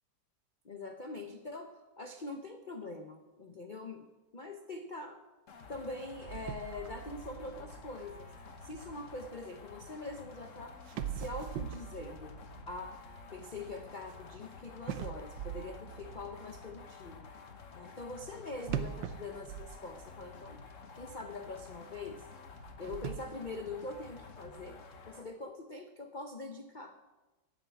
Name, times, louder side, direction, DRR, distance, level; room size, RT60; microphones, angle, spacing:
voice 1, 0.6-4.1 4.3-5.2 5.7-8.3 8.6-10.8 11.1-12.4 12.7-13.0 13.3-17.3 17.7-20.6 20.9-22.2 22.8-27.0, left 2 dB, 75° left, 5 dB, 0.4 m, -43 dB
sound 1, 5.5-25.3, left 5 dB, 45° left, 1.2 m, -51 dB
sound 2, 6.3-9.4 10.4-10.5 10.9-14.2 14.9-16.7 18.6-20.4 20.7-20.8 21.4-21.5 22.5-23.2, right 9 dB, 70° right, 1.4 m, -42 dB
10.5 x 8.3 x 8.3 m, 1.1 s
omnidirectional pair, 2.1 m